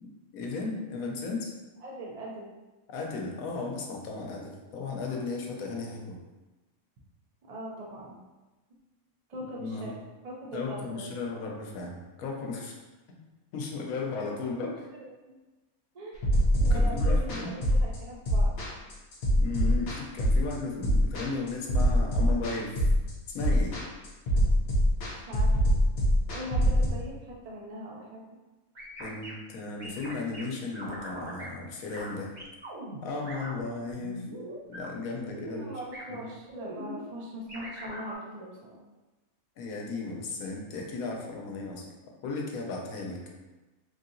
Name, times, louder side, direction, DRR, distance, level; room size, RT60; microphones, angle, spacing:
voice 1, 0.3-1.5 2.9-6.2 9.6-10.0 10.5-12.7 13.1-13.2 13.5-14.7 16.6-17.5 19.4-22.8 23.3-23.7 29.0-32.3 33.0-34.2 34.7-35.7 36.1-36.2 39.6-41.9 42.2-43.2, left 3 dB, 80° left, 0 dB, 1.0 m, -35 dB
voice 2, 1.8-2.5 7.5-8.2 9.3-9.9 10.2-11.1 14.6-15.3 15.9-16.2 16.6-18.5 25.1-25.5 26.3-28.2 35.5-38.8, equal, 85° right, -3 dB, 0.3 m, -41 dB
sound 1, 16.2-26.9, equal, 55° left, 0.8 m, -24 dB
sound 2, 28.7-29.3 29.8-30.4 30.7-31.5 31.9-32.1 32.3-33.6 33.9-34.9 35.2-35.7 35.9-36.0 36.5-37.0 37.5-38.1, right 1 dB, 70° right, 1.7 m, -41 dB
3.3 x 2.7 x 2.6 m, 1.1 s
omnidirectional pair, 1.5 m